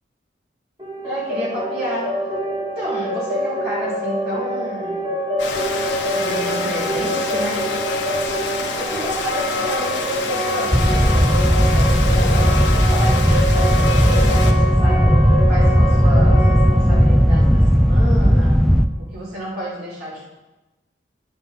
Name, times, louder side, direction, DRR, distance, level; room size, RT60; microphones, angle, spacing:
sound 1, 0.8-18.6, equal, 25° right, 2.4 m, -26 dB
voice 1, 1.0-2.1 2.8-5.1 6.1-7.6 8.8-15.1 15.5-18.6 19.1-20.2, equal, 55° right, -9 dB, 4.0 m, -30 dB
Rain, 5.4-14.5, left 4 dB, 75° left, 1.3 m, -27 dB
sound 2, 10.7-18.9, equal, ahead, 0.4 m, -15 dB
10.5 x 10.5 x 3.8 m, 1.1 s
head